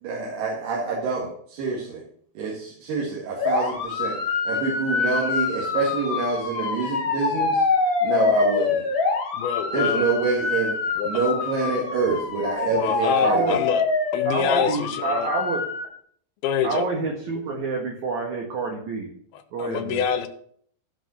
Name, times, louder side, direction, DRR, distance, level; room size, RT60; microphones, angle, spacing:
voice 1, 0.0-2.0 2.4-7.7 8.0-8.9 9.7-13.6, right 4 dB, 80° right, -4 dB, 4.0 m, -27 dB
sound 1, 3.4-15.9, left 4 dB, 55° left, 1.4 m, -25 dB
voice 2, 9.3-10.1 11.0-11.1 12.7-13.8 14.1-15.3 16.4-16.9 19.6-20.3, left 9 dB, 75° left, 9 dB, 2.5 m, -26 dB
voice 3, 13.2-13.6 14.3-15.7 16.6-19.1 19.5-20.1, right 3 dB, 60° right, 0 dB, 2.4 m, -28 dB
15.0 x 5.2 x 6.2 m, 0.62 s
omnidirectional pair, 4.7 m